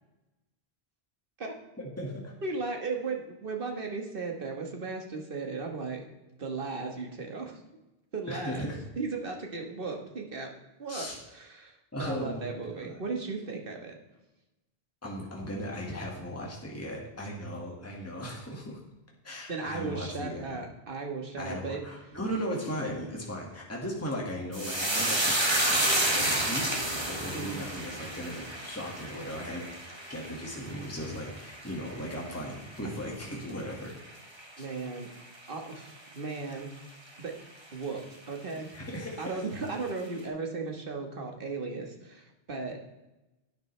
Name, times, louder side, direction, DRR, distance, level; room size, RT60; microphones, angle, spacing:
voice 1, 1.8-2.3 8.3-8.8 10.9-11.2 11.9-13.0 15.0-18.8 19.2-20.6 21.4-26.7 27.0-29.7 30.1-33.9 34.6-34.7 38.7-39.3, equal, 15° left, -2 dB, 1.9 m, -37 dB
voice 2, 2.4-6.1 6.4-7.6 8.1-8.7 9.0-10.5 10.8-13.9 19.5-21.8 27.2-27.6 34.6-35.1 35.5-36.7 37.2-37.4 37.7-38.8 39.2-42.8, right 4 dB, 60° right, 2 dB, 1.7 m, -36 dB
sound 1, 24.5-33.1 33.4-34.1 34.4-34.6, right 1 dB, 25° right, 1.7 m, -30 dB
12.0 x 9.0 x 3.3 m, 1.0 s
omnidirectional pair, 1.1 m